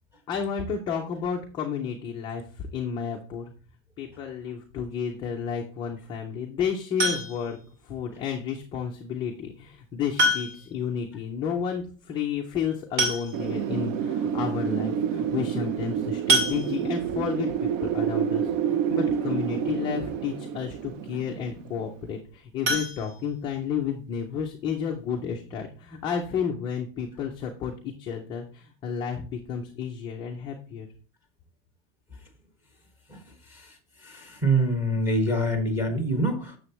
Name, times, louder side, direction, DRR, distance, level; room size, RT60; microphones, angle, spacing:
voice 1, 0.3-3.5 4.0-7.6 7.8-30.9, left 7 dB, 15° left, 0 dB, 0.3 m, -31 dB
sound 1, 7.0-7.6 9.1-9.2 10.2-10.8 11.1-11.2 11.5-11.6 12.6-12.7 13.0-13.7 14.3-14.4 14.7-14.9 16.3-17.1 22.6-23.8 24.2-24.3 24.7-24.8 25.2-25.3, right 1 dB, 60° right, 2.6 m, -26 dB
Wind, 13.3-22.0, right 8 dB, 90° right, 0.8 m, -28 dB
voice 2, 34.0-36.6, right 1 dB, 5° right, 4 dB, 1.5 m, -25 dB
9.7 x 6.8 x 3.0 m, 0.39 s
cardioid pair, 175°, 38 cm